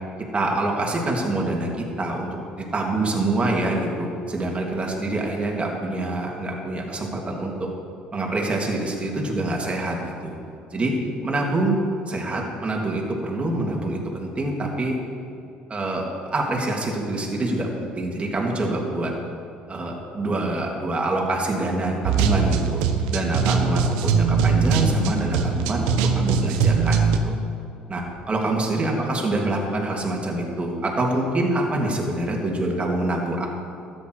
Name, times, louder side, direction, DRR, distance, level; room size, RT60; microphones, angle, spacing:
voice 1, 0.3-2.3 2.6-7.5 8.1-10.4 10.7-10.9 11.2-11.8 12.1-14.9 15.7-16.0 16.3-19.1 19.7-27.3 27.9-33.5, right 2 dB, 30° right, -1 dB, 2.9 m, -25 dB
sound 1, 22.0-27.2, right 5 dB, 80° right, 0.9 m, -21 dB
13.0 x 9.1 x 4.9 m, 2.6 s
hypercardioid pair, 65°, 4 cm